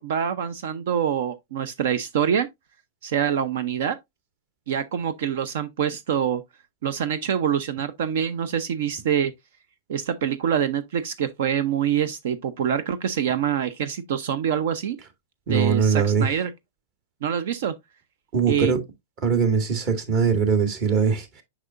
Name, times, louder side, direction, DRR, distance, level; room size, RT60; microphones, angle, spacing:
voice 1, 0.0-2.5 3.0-4.0 4.7-6.4 6.8-9.3 9.9-15.0 15.5-16.5 17.2-17.7 18.5-18.7, right 8 dB, 65° right, 0.6 m, -25 dB
voice 2, 15.5-16.3 18.3-18.8 19.2-21.4, right 6 dB, 40° right, 2.0 m, -21 dB
6.3 x 6.0 x 2.5 m
hypercardioid pair, 130°, 0 cm